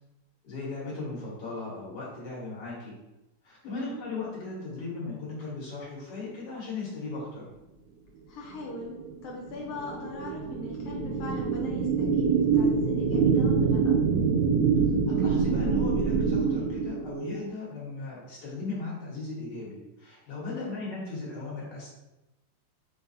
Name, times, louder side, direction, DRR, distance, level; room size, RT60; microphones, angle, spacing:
voice 1, 0.4-2.9 3.4-7.4 15.1-21.9, left 3 dB, 55° left, -6 dB, 1.9 m, -37 dB
voice 2, 3.6-4.0 8.3-9.0 9.2-14.0 20.5-20.8, left 2 dB, 85° left, -3 dB, 1.7 m, -40 dB
sound 1, 8.7-17.5, right 5 dB, 80° right, 0.9 m, -25 dB
4.2 x 3.7 x 2.7 m, 0.97 s
omnidirectional pair, 2.3 m